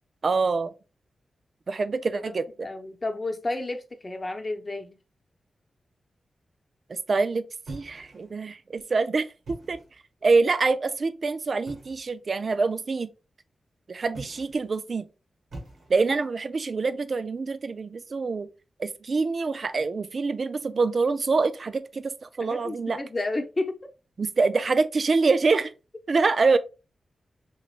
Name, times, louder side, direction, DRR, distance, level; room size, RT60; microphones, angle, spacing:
voice 1, 0.2-0.7 1.7-2.7 6.9-9.8 10.2-13.1 13.9-15.1 15.9-18.5 18.8-23.0 24.2-25.7 26.1-26.6, right 4 dB, 60° right, 0.3 m, -25 dB
voice 2, 2.6-5.0 22.4-23.8, left 2 dB, 40° left, 0.8 m, -31 dB
sound 1, 7.7-8.5 9.3-10.0 11.6-12.1 14.1-14.7 15.5-16.2, right 2 dB, 85° right, 1.7 m, -43 dB
3.9 x 3.0 x 2.4 m
cardioid pair, 45°, 0 cm